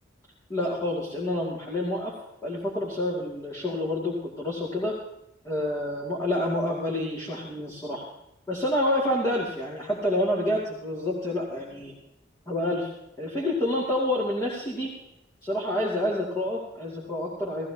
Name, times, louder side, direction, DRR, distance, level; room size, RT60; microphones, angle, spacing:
voice 1, 0.5-2.1 2.4-4.9 5.4-8.0 8.5-11.9 12.5-12.9 13.2-14.9 15.4-17.7, left 1 dB, 15° left, -5 dB, 2.2 m, -28 dB
18.0 x 15.0 x 2.9 m, 0.89 s
head